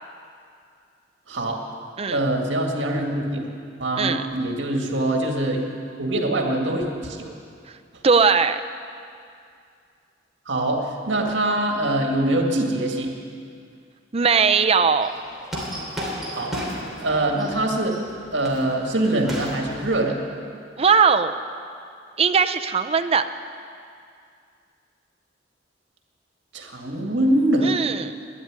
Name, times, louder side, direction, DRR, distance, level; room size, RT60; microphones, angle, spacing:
voice 1, 1.3-1.6 2.1-3.5 3.8-5.6 6.0-7.3 10.5-13.1 16.3-16.6 17.0-18.0 18.3-20.2 26.5-27.7, right 1 dB, 70° right, 1 dB, 2.0 m, -23 dB
voice 2, 8.0-8.6 14.1-15.1 20.8-21.4 22.2-23.2 27.6-28.1, right 5 dB, 35° right, 8 dB, 0.6 m, -19 dB
sound 1, 15.0-20.0, equal, ahead, 2.9 m, -34 dB
12.5 x 10.5 x 9.7 m, 2.4 s
head